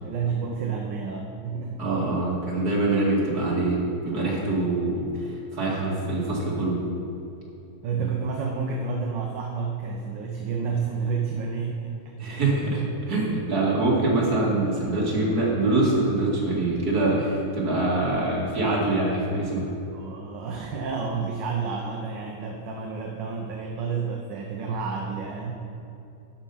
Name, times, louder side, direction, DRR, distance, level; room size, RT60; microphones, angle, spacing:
voice 1, 0.0-1.8 7.8-12.0 19.9-25.5, right 5 dB, 75° right, 1 dB, 1.5 m, -30 dB
voice 2, 1.8-6.8 12.2-19.7, right 2 dB, 50° right, -4 dB, 2.6 m, -24 dB
12.0 x 5.7 x 5.5 m, 2.8 s
omnidirectional pair, 2.1 m